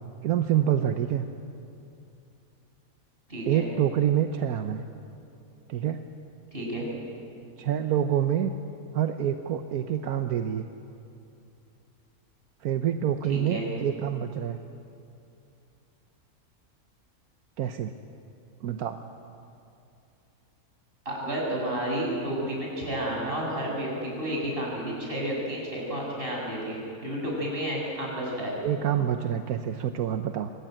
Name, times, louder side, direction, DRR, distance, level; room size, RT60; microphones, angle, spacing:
voice 1, 0.2-1.2 3.5-4.8 5.7-6.0 7.6-8.5 8.9-10.7 12.6-14.6 17.6-17.9 18.6-19.0 28.6-30.5, right 10 dB, 85° right, 7 dB, 1.3 m, -26 dB
voice 2, 3.3-3.7 6.5-6.9 13.3-13.7 21.1-28.5, right 1 dB, 40° right, -2 dB, 6.9 m, -31 dB
23.5 x 19.5 x 9.2 m, 2.6 s
omnidirectional pair, 1.5 m